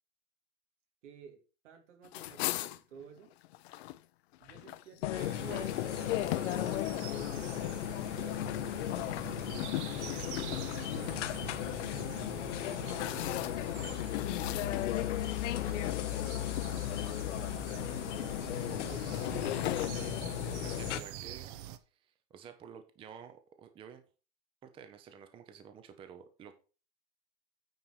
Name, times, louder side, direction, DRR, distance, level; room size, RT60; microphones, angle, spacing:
voice 1, 1.0-3.3 4.4-5.8 6.4-6.8 7.7-9.6 10.1-13.3 14.3-17.6 18.1-19.7, right 8 dB, 85° right, 5 dB, 2.8 m, -54 dB
sound 1, 2.0-4.0 4.3-11.9 12.6-13.8 14.1-15.4 15.8-16.1 16.5-17.2 17.9-19.9, left 16 dB, 60° left, 0.7 m, -40 dB
sound 2, 5.0-21.0, left 14 dB, 85° left, 0.9 m, -35 dB
voice 2, 5.1-5.7 20.6-21.5 21.9-24.0 24.6-26.5, right 7 dB, 15° right, 9 dB, 0.7 m, -51 dB
sound 3, 5.2-21.8, right 11 dB, 45° right, 0.8 m, -45 dB
9.3 x 4.6 x 5.8 m, 0.35 s
supercardioid pair, 165°, 35 cm